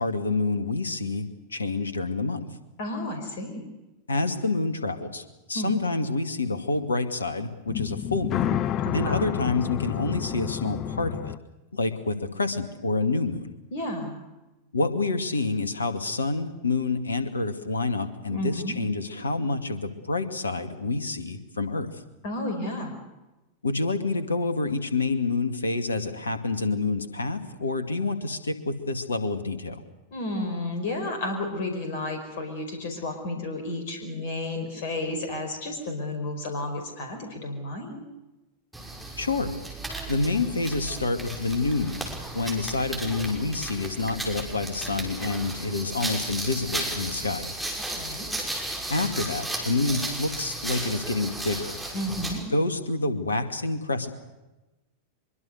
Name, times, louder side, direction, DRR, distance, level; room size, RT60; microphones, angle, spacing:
voice 1, 0.0-2.5 4.1-8.6 8.9-11.3 11.7-13.6 14.7-22.0 23.6-29.8 39.2-39.6 40.1-42.1 42.3-47.5 48.9-51.8 52.5-54.1, left 3 dB, 75° left, 10 dB, 2.3 m, -28 dB
voice 2, 2.8-3.6 5.5-5.8 8.8-9.3 13.7-14.2 18.3-18.8 22.2-22.9 30.1-38.0 47.9-48.3 51.9-52.4, left 1 dB, 50° left, 5 dB, 5.1 m, -32 dB
sound 1, 7.7-11.4, left 11 dB, 30° left, 0.8 m, -30 dB
sound 2, 38.7-52.4, right 2 dB, 5° right, 6.2 m, -34 dB
24.5 x 23.5 x 6.6 m, 1.0 s
figure-of-eight pair, 90°, 0 cm